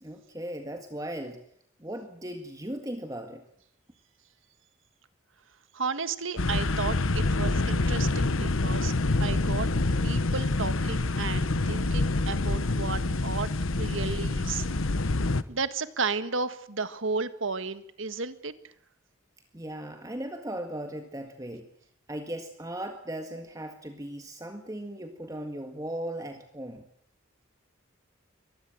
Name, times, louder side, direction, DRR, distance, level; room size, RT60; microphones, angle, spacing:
voice 1, 0.0-1.4 1.8-3.4 14.9-15.0 19.5-21.7 22.1-26.8, right 1 dB, 15° right, 5 dB, 1.8 m, -37 dB
voice 2, 5.7-8.9 9.2-9.7 10.0-13.5 13.8-14.9 15.5-18.5, right 4 dB, 75° right, 12 dB, 1.7 m, -33 dB
sound 1, 6.4-15.4, left 2 dB, 85° left, 1.2 m, -26 dB
24.0 x 20.0 x 7.7 m, 0.68 s
head